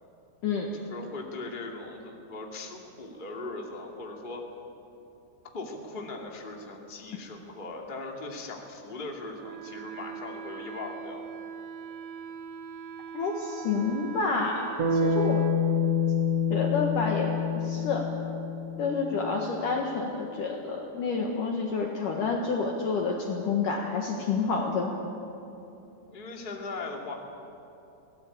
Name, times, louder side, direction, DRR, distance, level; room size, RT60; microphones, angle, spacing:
voice 1, 0.8-4.4 5.5-11.2 26.1-27.1, left 3 dB, 15° left, 0 dB, 1.7 m, -39 dB
Wind instrument woodwind instrument, 9.4-15.6, right 7 dB, 80° right, 3.5 m, -42 dB
voice 2, 13.1-15.5 16.5-18.2 18.8-24.9, left 4 dB, 60° left, 1 dB, 2.7 m, -29 dB
Bass guitar, 14.8-19.2, left 5 dB, 50° right, 2.1 m, -27 dB
23.0 x 18.5 x 8.6 m, 2.9 s
omnidirectional pair, 5.0 m